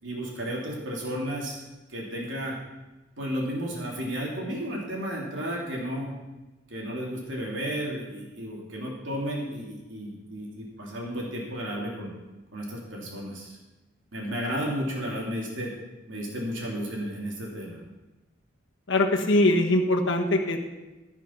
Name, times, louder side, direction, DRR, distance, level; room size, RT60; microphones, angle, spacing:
voice 1, 0.0-1.6 1.9-2.6 3.2-6.1 6.7-12.1 12.5-13.6 14.1-15.7 16.1-17.8, equal, 85° right, -3 dB, 3.1 m, -33 dB
voice 2, 18.9-20.6, left 1 dB, 80° left, 2 dB, 1.1 m, -22 dB
15.0 x 6.1 x 5.9 m, 1.1 s
head